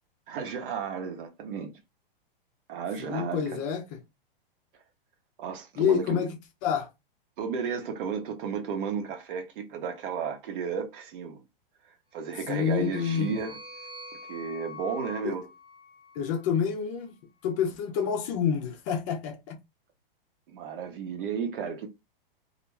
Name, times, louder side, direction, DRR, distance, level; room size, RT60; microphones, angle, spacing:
voice 1, 0.3-1.8 2.7-3.6 5.4-6.2 7.4-11.4 12.1-13.6 14.3-15.5 20.5-21.9, right 6 dB, 60° right, 1.0 m, -33 dB
voice 2, 3.0-3.8 5.8-6.3 6.6-6.9 12.5-13.3 15.2-15.4 16.2-17.1 17.4-19.6, left 8 dB, 35° left, 0.5 m, -28 dB
sound 1, 12.2-16.6, left 2 dB, 15° right, 0.6 m, -45 dB
2.5 x 2.2 x 3.1 m
hypercardioid pair, 140°, 29 cm